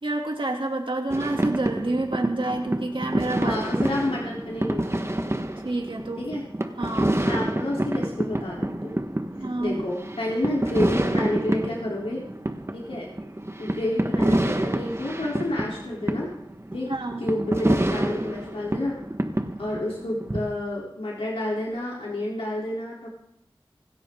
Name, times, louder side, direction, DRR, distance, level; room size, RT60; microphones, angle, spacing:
voice 1, 0.0-3.6 5.6-6.2 6.8-7.2 9.4-9.8 16.9-17.2, right 2 dB, 65° right, 1 dB, 2.8 m, -28 dB
sound 1, 1.1-20.4, right 1 dB, 30° right, 1.4 m, -28 dB
voice 2, 3.4-5.1 6.2-6.4 7.2-9.0 9.6-12.2 12.7-13.1 13.6-16.3 16.7-16.9 17.2-19.0 19.6-23.1, left 1 dB, 85° left, -4 dB, 3.5 m, -29 dB
26.0 x 13.0 x 3.8 m, 0.79 s
wide cardioid pair, 60°, 9 cm